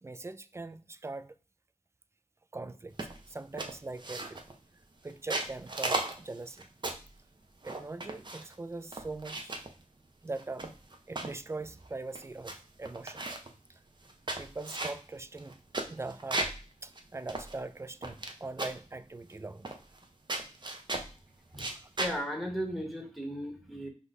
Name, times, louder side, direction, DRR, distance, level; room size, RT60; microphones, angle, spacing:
voice 1, 0.0-1.3 2.5-4.4 5.0-6.7 7.6-9.5 10.2-10.7 11.1-13.3 14.4-15.6 15.9-16.5 16.8-19.7, right 3 dB, 20° right, 0.3 m, -41 dB
sound 1, 3.0-3.3 3.6-4.6 5.1-7.1 7.6-8.5 8.9-9.7 10.3-11.4 11.8-11.9 12.1-12.5 12.8-13.5 14.0-16.6 16.9-17.0 17.3-18.3 18.6-18.9 19.6-20.0 20.3-21.1 21.5-22.2, right 2 dB, 35° right, 0.8 m, -36 dB
voice 2, 22.0-23.9, equal, ahead, 1.3 m, -36 dB
4.9 x 2.3 x 4.0 m
wide cardioid pair, 70°, 13 cm